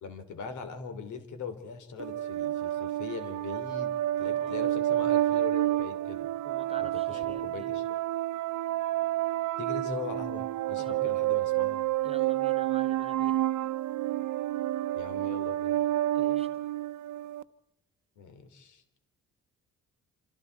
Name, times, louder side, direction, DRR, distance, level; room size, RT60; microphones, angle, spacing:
voice 1, 0.0-6.3 6.8-7.8 9.6-11.8 14.9-15.8 18.2-18.8, left 5 dB, 75° left, 3.1 m, -41 dB
sound 1, 2.0-17.4, right 14 dB, 70° right, 0.7 m, -29 dB
voice 2, 4.2-4.7 6.4-7.7 10.8-11.1 12.0-13.5 16.1-16.5, right 3 dB, 20° right, 1.1 m, -47 dB
27.5 x 26.5 x 4.7 m
cardioid pair, 90°, 30 cm